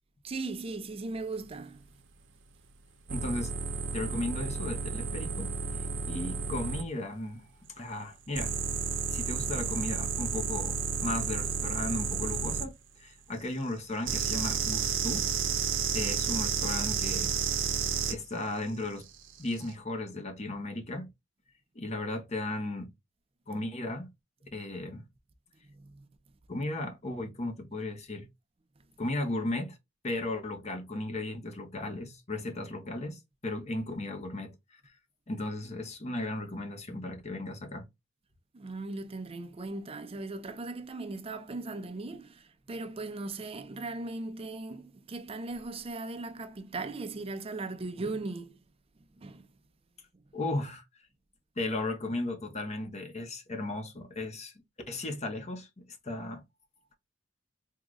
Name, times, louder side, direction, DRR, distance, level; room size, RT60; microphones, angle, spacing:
voice 1, 0.2-1.8 25.7-26.1 38.5-42.3 42.7-48.6 49.2-49.5, right 3 dB, 30° right, 0.5 m, -38 dB
voice 2, 3.1-3.5 3.9-5.5 6.0-7.5 7.7-8.5 9.1-12.7 13.0-15.3 15.9-17.4 18.1-19.1 19.4-21.1 21.7-22.9 23.5-24.1 24.5-25.0 26.5-28.3 29.0-29.8 30.0-34.9 35.3-37.8 50.3-50.8 51.6-54.5 54.9-56.4, left 2 dB, 35° left, 0.8 m, -35 dB
sound 1, 3.1-6.8 8.3-12.6 14.0-18.1 19.4-19.6, right 6 dB, 85° right, 0.7 m, -31 dB
3.7 x 2.3 x 3.0 m
head